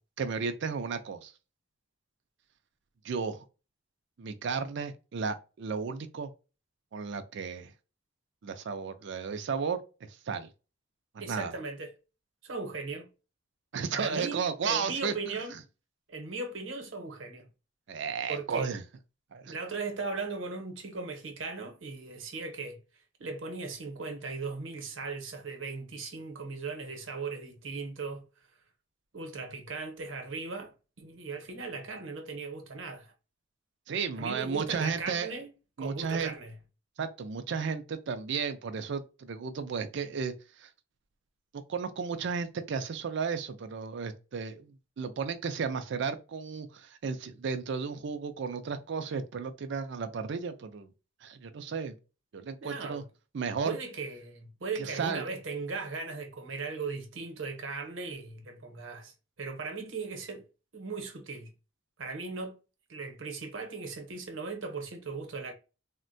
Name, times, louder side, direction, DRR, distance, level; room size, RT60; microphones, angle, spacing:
voice 1, 0.2-1.3 3.0-3.4 4.2-6.3 6.9-7.7 8.4-9.8 10.1-10.5 11.3-11.5 13.7-15.3 17.9-18.8 19.3-19.6 33.9-35.3 35.8-36.3 37.0-40.7 41.5-50.9 51.2-51.9 52.3-53.0 53.3-53.8 54.8-55.2, right 5 dB, 65° right, 0.4 m, -34 dB
voice 2, 11.2-11.9 12.4-13.1 13.9-15.5 16.1-17.5 18.3-18.7 19.4-22.8 23.2-28.2 29.1-33.1 34.2-35.5 35.8-36.5 52.6-53.0 53.6-59.1 59.4-60.4 60.7-61.5 62.0-62.5 62.9-65.5, right 4 dB, 80° right, 0.9 m, -38 dB
3.6 x 2.1 x 2.5 m
head